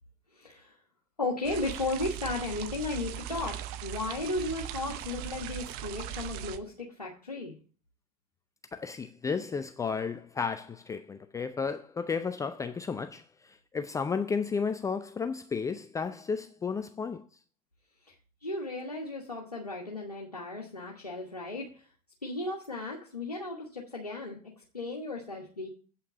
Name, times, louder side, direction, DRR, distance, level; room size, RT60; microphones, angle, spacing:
voice 1, 0.3-0.8 1.2-7.5 18.4-21.9 22.2-24.4 24.7-25.7, left 2 dB, 90° left, 1.4 m, -35 dB
sound 1, 1.4-6.6, right 12 dB, 50° right, 0.8 m, -39 dB
voice 2, 8.7-17.3, left 5 dB, 15° left, 0.5 m, -33 dB
8.5 x 5.7 x 6.9 m
figure-of-eight pair, 75°, 20 cm